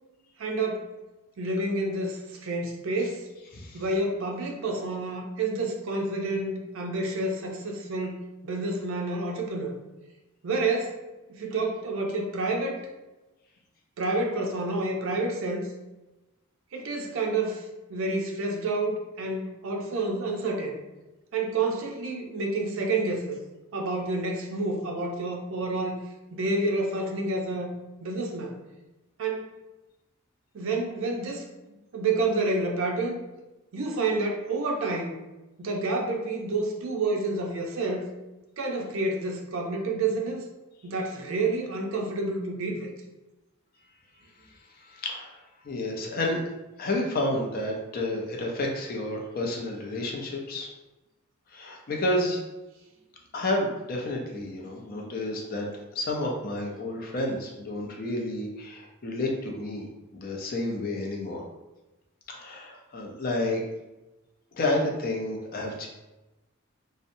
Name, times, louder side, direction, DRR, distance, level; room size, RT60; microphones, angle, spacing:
voice 1, 0.4-0.9 1.4-3.3 3.7-9.8 10.4-11.0 11.3-12.8 14.0-15.7 16.7-20.8 21.3-23.4 23.7-26.0 26.3-27.7 28.0-28.6 29.2-29.6 30.5-31.4 31.9-33.2 33.7-35.1 35.6-38.1 38.6-40.4 40.8-42.9, right 2 dB, 70° right, 1 dB, 0.5 m, -29 dB
voice 2, 44.9-46.4 46.8-50.7 51.5-52.4 53.3-55.7 55.9-61.4 62.3-63.6 64.5-65.9, left 1 dB, 45° left, 0 dB, 0.4 m, -30 dB
2.7 x 2.1 x 2.5 m, 1.0 s
head